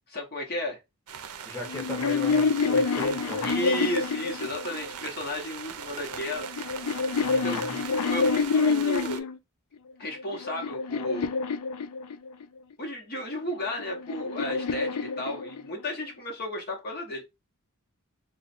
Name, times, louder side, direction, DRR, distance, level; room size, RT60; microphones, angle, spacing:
voice 1, 0.1-0.8 3.4-6.5 7.3-7.6 8.1-9.2 10.0-11.3 12.8-17.2, left 1 dB, 45° left, 0.9 m, -33 dB
sound 1, 1.1-9.2, right 8 dB, 85° right, 0.5 m, -40 dB
voice 2, 1.4-3.5 7.2-7.8, left 1 dB, 15° left, 0.9 m, -38 dB
sound 2, 1.7-5.1 6.0-9.4 10.0-12.5 13.5-15.9, left 4 dB, 90° left, 0.4 m, -27 dB
3.0 x 2.2 x 4.2 m
head